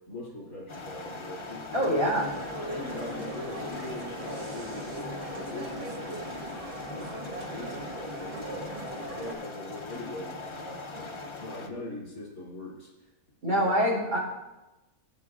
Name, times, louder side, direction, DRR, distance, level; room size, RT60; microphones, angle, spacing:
voice 1, 0.0-2.2 2.7-6.3 6.8-8.7 9.0-13.1 13.4-13.7, left 1 dB, 65° left, -4 dB, 3.2 m, -41 dB
sound 1, 0.7-11.7, left 3 dB, 45° left, 0.3 m, -41 dB
voice 2, 1.7-2.3 13.4-14.2, equal, 65° right, -4 dB, 4.2 m, -25 dB
sound 2, 2.0-9.3, right 1 dB, 35° right, 0.6 m, -39 dB
16.5 x 7.9 x 2.4 m, 1.1 s
omnidirectional pair, 1.6 m